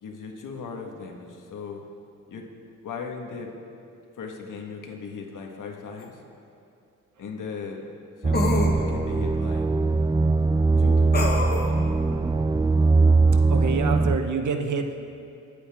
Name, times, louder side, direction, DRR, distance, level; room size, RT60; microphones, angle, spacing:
voice 1, 0.0-1.8 2.3-2.4 2.8-3.5 4.2-6.2 7.2-7.9 8.2-9.7 10.8-12.0, left 5 dB, 75° left, 1 dB, 1.7 m, -38 dB
sound 1, 6.0-6.1 8.3-8.8 11.1-11.7, left 2 dB, 30° left, 1.5 m, -26 dB
sound 2, 8.2-14.2, right 3 dB, 15° right, 0.3 m, -21 dB
voice 2, 13.5-15.0, right 5 dB, 70° right, 6 dB, 1.0 m, -27 dB
22.0 x 8.3 x 3.7 m, 2.6 s
cardioid pair, 95°, 31 cm